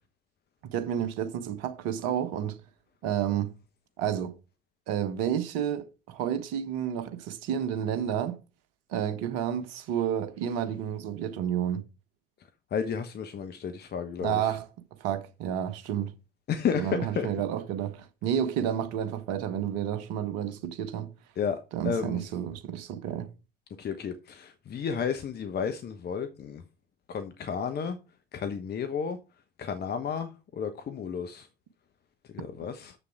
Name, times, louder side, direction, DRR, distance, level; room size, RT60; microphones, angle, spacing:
voice 1, 0.6-2.6 3.0-3.5 4.0-4.3 4.9-8.4 8.9-11.8 14.2-14.7 15.0-16.1 16.7-21.1 21.7-23.3, right 9 dB, 60° right, 1.3 m, -30 dB
voice 2, 12.7-14.5 16.5-17.3 21.4-22.2 23.8-26.6 27.1-28.0 28.3-29.2 29.6-31.5 32.3-32.9, left 7 dB, 35° left, 1.2 m, -32 dB
7.3 x 6.7 x 4.7 m
figure-of-eight pair, 65°, 29 cm